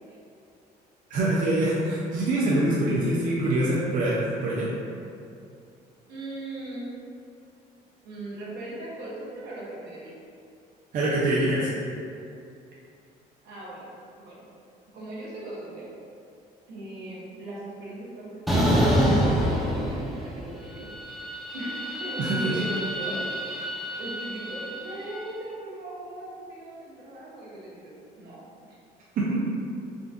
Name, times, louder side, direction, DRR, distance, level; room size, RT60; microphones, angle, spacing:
voice 1, 1.1-4.7 10.9-11.7 22.2-22.6 29.2-29.4, right 1 dB, 50° right, -6 dB, 0.5 m, -24 dB
voice 2, 6.1-6.9 8.0-10.1 13.4-13.9 14.2-14.5 14.9-15.9 16.7-20.9 21.5-23.2 24.0-28.4 28.7-28.8, right 1 dB, 75° right, -6 dB, 0.8 m, -39 dB
sound 1, 18.5-20.4 20.7-25.1, equal, ahead, 0.5 m, -26 dB
3.7 x 2.2 x 2.5 m, 2.5 s
cardioid pair, 110°, 17 cm